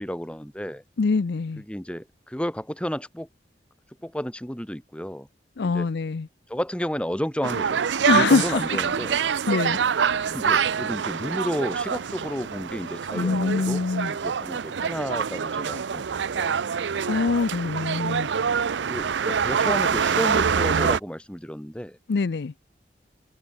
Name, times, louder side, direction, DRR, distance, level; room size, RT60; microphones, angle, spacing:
voice 1, 0.0-0.8 1.6-3.3 4.0-5.3 5.6-5.9 6.5-7.8 8.1-9.2 10.2-13.8 14.1-16.6 18.9-22.0, equal, 5° left, 3.6 m, -32 dB
voice 2, 1.0-1.6 5.6-6.3 8.1-8.6 9.5-9.8 13.1-14.1 17.1-18.3 22.1-22.5, left 4 dB, 70° left, 0.5 m, -24 dB
sound 1, 7.4-21.0, right 6 dB, 85° right, 0.5 m, -25 dB
open air
head